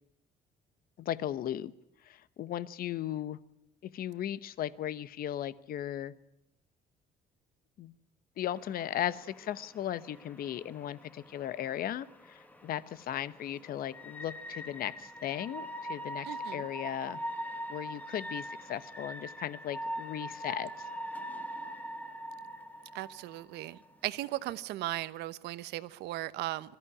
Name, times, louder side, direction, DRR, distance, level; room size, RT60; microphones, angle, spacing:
voice 1, 1.0-1.7 2.0-3.4 3.9-6.1 7.8-7.9 8.4-16.3 16.5-17.2 17.7-20.9, left 11 dB, 60° left, 16 dB, 1.0 m, -37 dB
sound 1, 8.5-24.5, equal, 10° left, 1.5 m, -43 dB
voice 2, 16.2-16.7 22.9-26.8, right 16 dB, 85° right, 15 dB, 1.0 m, -37 dB
21.5 x 14.5 x 10.0 m, 0.83 s
cardioid pair, 110°, 17 cm